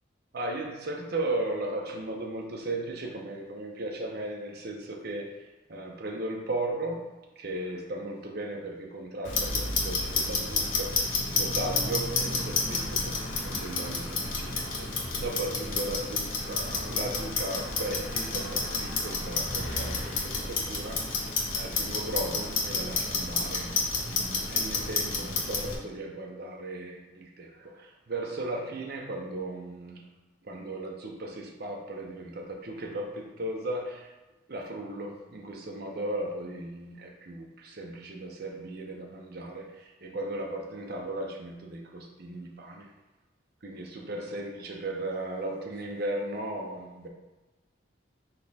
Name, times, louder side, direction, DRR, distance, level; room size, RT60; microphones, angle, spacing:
voice 1, 0.3-5.3 5.7-7.1 7.4-14.9 15.2-21.1 21.5-23.8 24.1-30.0 30.4-34.1 34.5-42.9 43.6-47.1, right 2 dB, 55° right, 1 dB, 0.7 m, -36 dB
Clock, 9.2-25.7, left 3 dB, 85° left, 1.0 m, -30 dB
5.4 x 2.3 x 4.1 m, 1.1 s
head